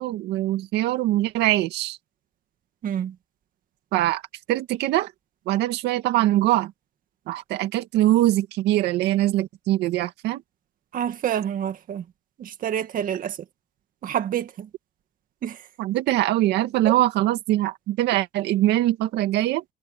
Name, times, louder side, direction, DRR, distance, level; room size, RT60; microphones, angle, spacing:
voice 1, 0.0-2.0 3.9-4.2 4.5-5.1 5.5-6.7 7.3-10.4 15.8-19.6, right 15 dB, 85° right, 2.2 m, -22 dB
voice 2, 2.8-3.2 10.9-12.0 12.4-13.4 14.0-14.7 15.4-15.7 16.8-17.0, right 9 dB, 55° right, 2.1 m, -28 dB
cardioid pair, 110°, 17 cm